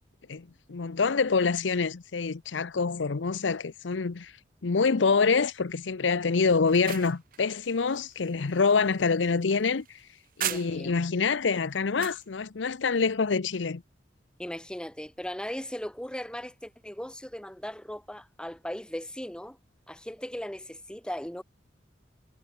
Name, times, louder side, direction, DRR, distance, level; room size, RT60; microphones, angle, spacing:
voice 1, 0.3-4.3 4.6-10.0 10.4-13.8, left 4 dB, 80° left, 0.7 m, -26 dB
sound 1, 6.5-11.1 11.5-12.2, right 12 dB, 50° right, 0.7 m, -39 dB
voice 2, 10.4-10.9 14.4-19.6 19.9-21.4, equal, 5° left, 1.3 m, -38 dB
head